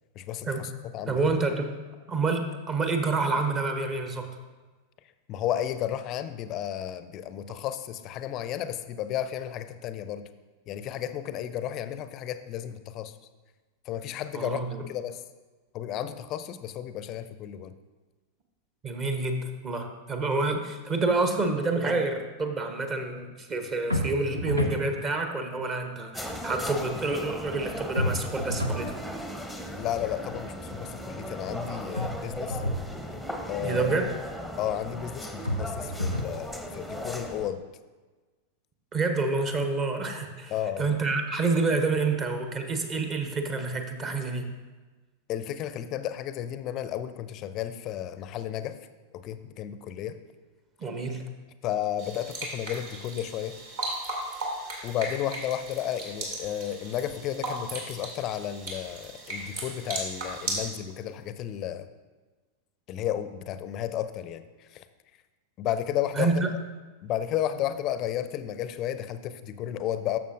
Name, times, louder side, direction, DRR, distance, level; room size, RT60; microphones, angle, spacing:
voice 1, 0.2-1.2 5.3-10.3 10.7-13.1 13.9-15.2 15.7-17.7 29.8-32.6 33.5-34.0 34.6-37.6 40.5-40.9 45.3-48.8 49.1-50.2 51.6-53.6 54.8-61.9 62.9-64.4 64.7-64.8 65.6-66.4 67.0-70.2, left 11 dB, 35° left, 12 dB, 0.5 m, -33 dB
voice 2, 1.1-1.7 2.1-4.3 14.3-14.8 18.8-29.0 33.6-34.1 38.9-44.5 50.8-51.2 66.2-66.5, right 3 dB, 30° right, 6 dB, 0.9 m, -28 dB
sound 1, 23.9-24.8 28.0-28.8 31.9-32.8 35.4-36.4, left 1 dB, 85° right, 0.7 m, -29 dB
sound 2, 26.1-37.5, equal, 5° right, 0.7 m, -37 dB
sound 3, 52.0-60.7, right 2 dB, 55° right, 2.1 m, -36 dB
12.0 x 6.9 x 2.6 m, 1.3 s
figure-of-eight pair, 90°, 0 cm